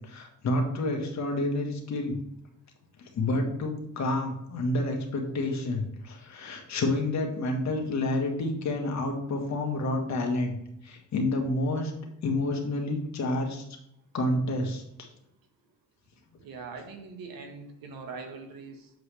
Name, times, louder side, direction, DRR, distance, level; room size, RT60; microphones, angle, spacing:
voice 1, 0.0-2.1 3.1-10.5 10.8-11.9 12.2-13.6 14.1-15.1, left 2 dB, 55° left, 2 dB, 1.7 m, -29 dB
voice 2, 16.4-18.9, right 4 dB, 80° right, 4 dB, 1.7 m, -42 dB
8.0 x 6.8 x 3.4 m, 0.75 s
cardioid pair, 175°, 34 cm